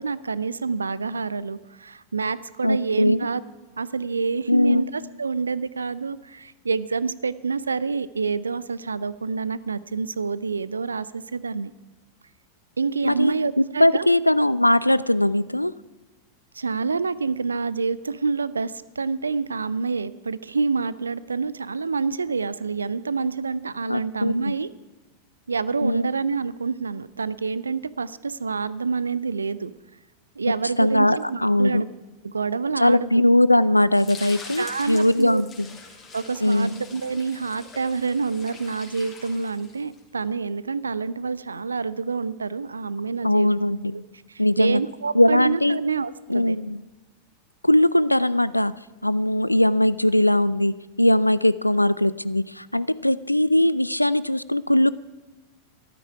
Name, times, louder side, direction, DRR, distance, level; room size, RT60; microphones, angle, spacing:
voice 1, 0.0-3.4 3.8-11.1 11.3-11.7 12.8-14.1 16.5-24.7 25.5-29.7 30.4-31.9 32.2-33.2 34.6-35.4 36.1-43.5 43.9-44.0 44.3-46.6, right 4 dB, 75° right, 18 dB, 0.4 m, -27 dB
voice 2, 2.6-3.3 4.5-4.9 13.0-15.7 23.9-24.5 25.8-26.1 30.8-31.8 32.8-35.7 36.4-36.8 43.2-44.0 44.4-44.8 45.1-45.8 46.3-46.8 47.6-48.7 49.0-54.9, left 1 dB, 85° left, 19 dB, 0.4 m, -20 dB
sound 1, 33.9-40.0, left 4 dB, 25° left, 3.1 m, -43 dB
14.0 x 12.5 x 4.8 m, 1.2 s
figure-of-eight pair, 90°, 0 cm